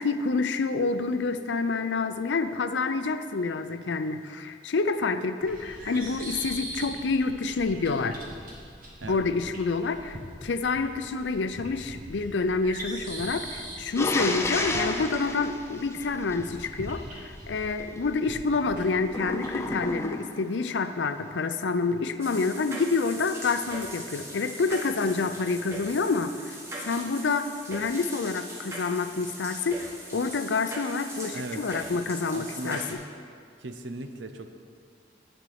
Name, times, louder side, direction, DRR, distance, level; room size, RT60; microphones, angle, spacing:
voice 1, 0.0-8.2 9.1-26.6 26.8-32.8, left 4 dB, 85° left, 10 dB, 0.5 m, -28 dB
sound 1, 5.4-19.9, right 1 dB, 50° right, 1.9 m, -42 dB
sound 2, 13.9-16.7 19.1-20.5, left 2 dB, 15° left, 0.5 m, -31 dB
sound 3, 22.2-32.9, right 1 dB, 15° right, 1.2 m, -40 dB
voice 2, 31.3-31.8 32.3-32.8 33.6-34.5, right 2 dB, 85° right, 7 dB, 0.7 m, -38 dB
10.5 x 4.4 x 7.9 m, 2.3 s
head